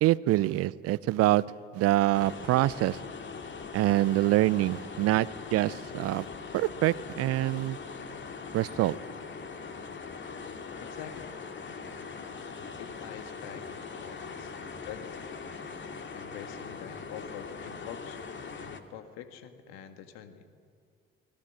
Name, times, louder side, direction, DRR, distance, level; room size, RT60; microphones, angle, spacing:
voice 1, 0.0-1.4 1.7-3.0 3.7-6.3 6.5-7.8 8.5-9.0, right 16 dB, 55° right, 20 dB, 0.7 m, -25 dB
sound 1, 2.1-18.8, left 5 dB, 40° left, 2.3 m, -41 dB
voice 2, 10.8-11.3 12.8-14.5 14.8-15.3 16.1-18.2 18.5-20.5, left 9 dB, 65° left, 8 dB, 1.8 m, -45 dB
29.0 x 20.0 x 7.5 m, 2.1 s
figure-of-eight pair, 50°, 29 cm